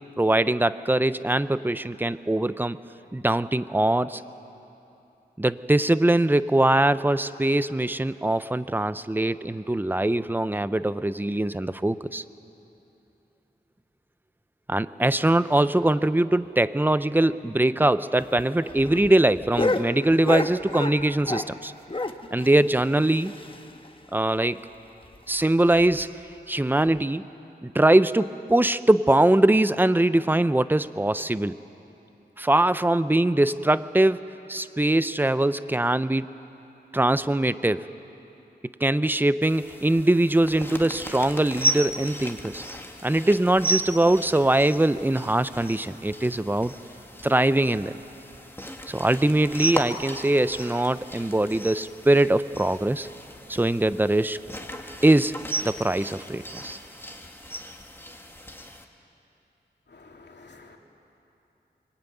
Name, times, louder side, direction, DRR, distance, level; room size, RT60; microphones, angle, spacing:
voice 1, 0.2-2.8 3.1-4.2 5.4-12.2 14.7-21.7 22.3-23.3 24.1-24.6 25.3-26.1 26.5-27.3 27.6-31.6 32.4-36.3 36.9-37.8 38.8-42.6 43.0-46.7 47.2-47.9 48.9-53.1 53.5-54.4 55.0-55.3 55.6-56.8, right 1 dB, 10° right, 14 dB, 0.7 m, -22 dB
sound 1, 18.2-21.6 21.9-23.9 24.2-24.3 24.6-24.7 25.0-25.2 25.7-26.0 26.9-27.0, left 2 dB, 30° left, 1.2 m, -30 dB
sound 2, 39.4-58.8, right 1 dB, 10° left, 2.0 m, -35 dB
voice 2, 59.9-60.8, left 3 dB, 75° left, 1 dB, 2.8 m, -50 dB
24.0 x 23.5 x 9.3 m, 2.9 s
wide cardioid pair, 75°, 18 cm